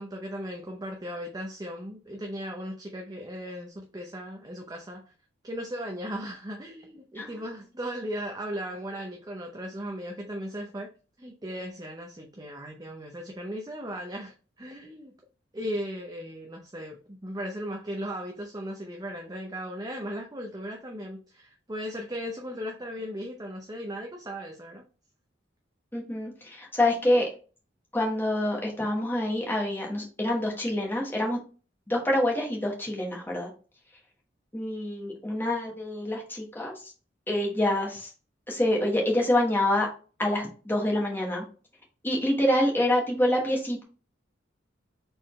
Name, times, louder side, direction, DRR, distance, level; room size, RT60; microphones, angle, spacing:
voice 1, 0.0-5.0 5.4-10.9 11.2-15.1 15.5-24.8, equal, 20° right, 0.6 m, -37 dB
voice 2, 25.9-27.3 27.9-31.4 31.9-33.5 34.5-36.9 37.3-38.1 38.5-39.9 40.2-41.4 42.0-43.8, left 1 dB, 10° left, 1.2 m, -26 dB
4.4 x 3.7 x 3.1 m
head